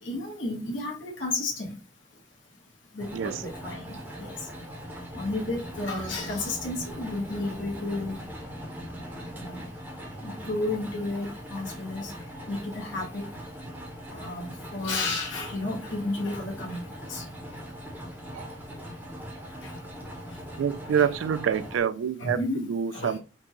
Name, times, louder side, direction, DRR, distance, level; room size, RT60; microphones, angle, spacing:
voice 1, 0.0-1.8 2.9-4.3 5.1-8.2 9.4-9.6 10.2-12.1 12.5-13.3 14.1-17.2 19.6-19.7 22.2-23.2, left 2 dB, 80° left, 1.1 m, -32 dB
sound 1, 3.0-21.8, equal, 10° right, 0.6 m, -41 dB
voice 2, 3.1-3.4 18.3-18.5 20.6-23.2, right 8 dB, 85° right, 0.3 m, -27 dB
3.9 x 2.2 x 2.9 m
head